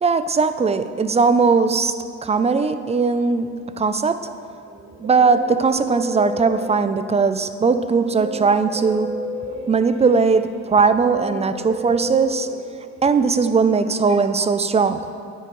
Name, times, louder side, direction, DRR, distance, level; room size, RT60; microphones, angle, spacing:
voice 1, 0.0-1.9 2.2-3.5 3.8-4.2 5.0-9.1 9.7-12.5 13.0-15.0, right 4 dB, 20° right, 11 dB, 0.4 m, -19 dB
Guitar, 4.7-7.2 8.0-13.4, equal, 70° right, 1.1 m, -33 dB
9.1 x 9.1 x 3.1 m, 2.4 s
cardioid pair, 90°, 30 cm